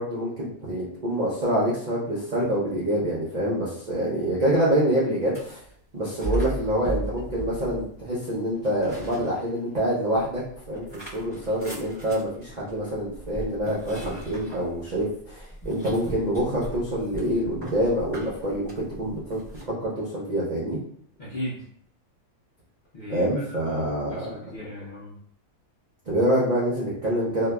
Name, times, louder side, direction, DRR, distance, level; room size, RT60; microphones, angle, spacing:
voice 1, 0.0-5.6 5.9-10.4 10.7-19.4 19.7-20.8 23.1-24.2 26.1-27.5, equal, 55° right, -7 dB, 0.5 m, -26 dB
sound 1, 5.2-5.7 6.2-8.2 8.6-9.8 10.2-19.7, right 2 dB, 20° left, 0.9 m, -37 dB
voice 2, 21.2-21.6 22.9-25.1, left 1 dB, 45° left, -8 dB, 0.7 m, -37 dB
2.6 x 2.2 x 2.2 m, 0.63 s
omnidirectional pair, 1.5 m